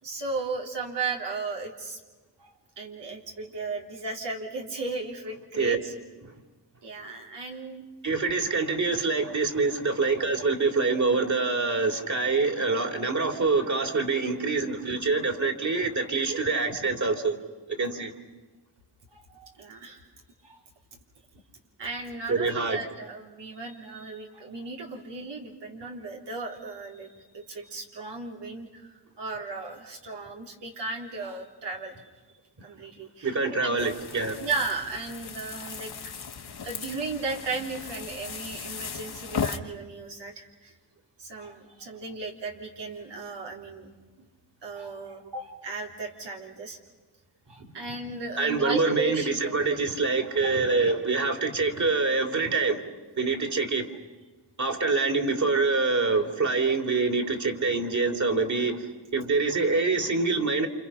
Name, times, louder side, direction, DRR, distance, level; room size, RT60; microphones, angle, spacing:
voice 1, 0.0-2.0 2.4-5.9 6.3-6.4 6.8-7.8 19.1-20.0 20.4-20.6 21.8-31.9 32.6-33.8 34.4-35.9 36.6-40.7 41.2-43.9 44.2-44.3 44.6-46.8 47.5-49.4, right 3 dB, 90° right, 0 dB, 3.6 m, -36 dB
voice 2, 8.0-17.4 17.7-18.1 22.3-22.8 33.2-34.4 48.4-52.8 53.2-53.9 54.6-60.7, right 3 dB, 45° right, 5 dB, 3.3 m, -25 dB
sound 1, 33.8-39.6, left 6 dB, 65° left, 1.6 m, -37 dB
29.5 x 27.5 x 5.8 m, 1.3 s
cardioid pair, 75°, 41 cm